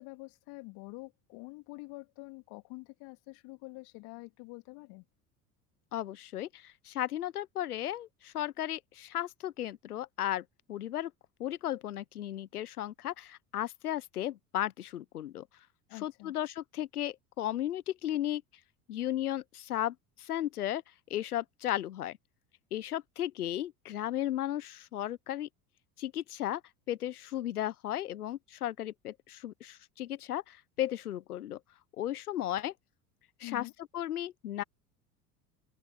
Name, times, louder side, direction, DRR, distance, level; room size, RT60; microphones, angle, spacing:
voice 1, 0.0-5.0 15.9-16.3 33.4-33.7, left 27 dB, 55° left, 3.4 m, -46 dB
voice 2, 5.9-11.1 11.4-15.5 15.9-18.4 18.9-20.8 21.1-22.2 22.7-25.5 26.0-26.6 26.9-31.6 32.0-32.7 33.4-34.6, left 12 dB, 80° left, 1.1 m, -35 dB
figure-of-eight pair, 70°, 45 cm